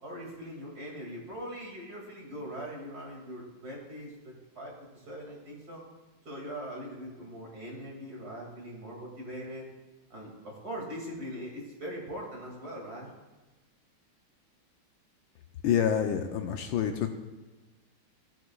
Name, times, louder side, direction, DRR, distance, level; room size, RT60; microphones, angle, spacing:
voice 1, 0.0-5.8 6.2-9.7 10.1-13.1, equal, 45° right, -2 dB, 2.8 m, -41 dB
voice 2, 15.6-17.1, left 8 dB, 75° left, 5 dB, 1.3 m, -27 dB
17.0 x 8.1 x 2.3 m, 1.2 s
omnidirectional pair, 2.4 m